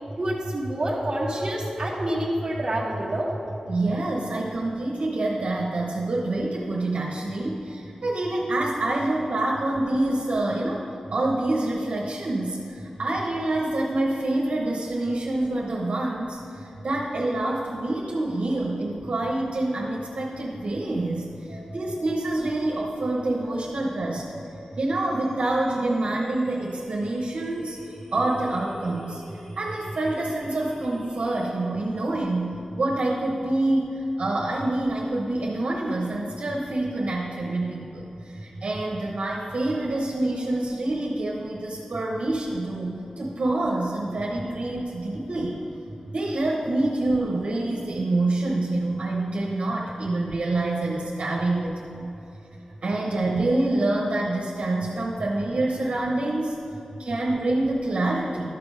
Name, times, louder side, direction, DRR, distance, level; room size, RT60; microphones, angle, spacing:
voice 1, 0.2-3.3, right 1 dB, 30° right, -6 dB, 1.4 m, -27 dB
voice 2, 3.7-10.8 11.1-24.2 24.8-29.2 29.6-45.6 46.1-52.1 52.8-56.6 57.0-58.5, right 2 dB, 75° right, -3 dB, 1.0 m, -26 dB
sound 1, 21.5-31.5, equal, 30° left, 2.2 m, -45 dB
12.5 x 6.0 x 5.0 m, 3.0 s
wide cardioid pair, 85°, 2 cm